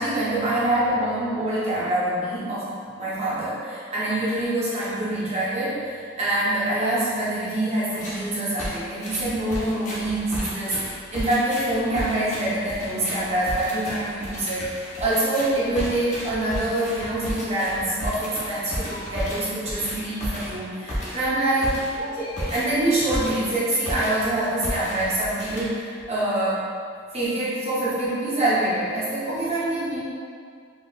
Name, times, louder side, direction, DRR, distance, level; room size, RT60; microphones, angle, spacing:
voice 1, 0.0-21.7 22.0-26.6 27.1-30.1, right 1 dB, 30° right, -8 dB, 0.6 m, -25 dB
sound 1, 7.9-8.3 8.6-23.6 23.9-24.3 24.6-26.0, equal, 35° left, 0.5 m, -33 dB
3.8 x 2.0 x 2.4 m, 2.2 s
head